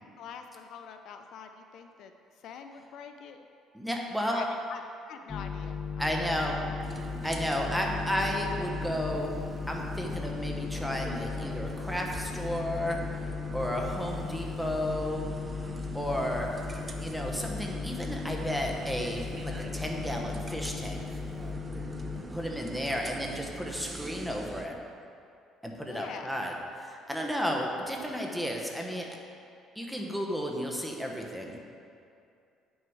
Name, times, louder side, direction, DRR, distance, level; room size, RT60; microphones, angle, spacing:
voice 1, 0.2-2.1 2.4-3.4 4.3-4.8 5.1-6.6 7.2-7.3 25.9-26.4, left 6 dB, 65° left, 6 dB, 0.5 m, -44 dB
voice 2, 3.7-4.4 6.0-9.4 9.7-15.3 15.6-16.5 17.0-21.2 22.3-24.8 25.6-26.5 26.8-29.1 29.7-31.6, equal, ahead, 0 dB, 1.0 m, -33 dB
sound 1, 5.3-22.2, left 5 dB, 20° left, 0.6 m, -37 dB
sound 2, 6.8-24.7, right 2 dB, 20° right, 0.6 m, -42 dB
8.7 x 6.3 x 4.7 m, 2.5 s
cardioid pair, 125°, 0 cm